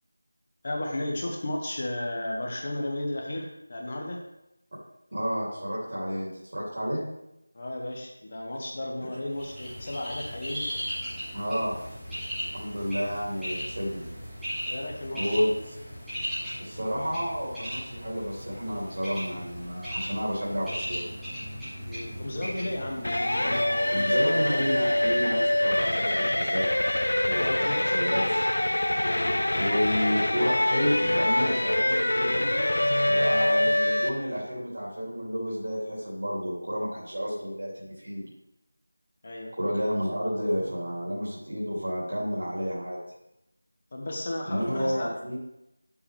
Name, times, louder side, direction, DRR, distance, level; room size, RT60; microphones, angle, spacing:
voice 1, 0.6-4.2 7.5-10.7 14.7-15.4 21.9-24.5 27.4-28.2 29.0-29.4 39.2-39.5 43.9-45.1, left 1 dB, 35° left, 1 dB, 1.3 m, -34 dB
voice 2, 5.1-7.0 11.3-11.8 12.5-14.1 15.1-15.8 16.6-21.1 23.9-26.6 27.2-28.4 29.6-32.7 33.1-38.2 39.5-43.0 44.5-45.4, equal, 50° right, -7 dB, 2.9 m, -30 dB
Bird, 9.3-27.1, equal, ahead, 1.5 m, -38 dB
sound 1, 23.0-34.1, left 1 dB, 55° left, 0.7 m, -25 dB
8.7 x 7.3 x 3.4 m, 0.87 s
figure-of-eight pair, 170°, 0 cm